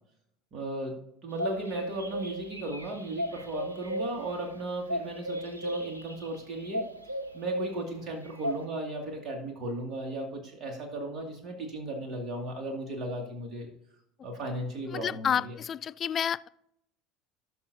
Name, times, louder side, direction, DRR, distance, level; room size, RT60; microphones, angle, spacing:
voice 1, 0.5-0.9 1.2-6.8 7.3-13.7 14.2-15.5, right 1 dB, 40° right, 1 dB, 2.2 m, -36 dB
sound 1, 1.3-8.7, equal, 90° right, 0.6 m, -36 dB
voice 2, 14.9-16.5, left 8 dB, 35° left, 15 dB, 0.3 m, -30 dB
17.0 x 6.1 x 2.7 m, 0.76 s
figure-of-eight pair, 70°, 0 cm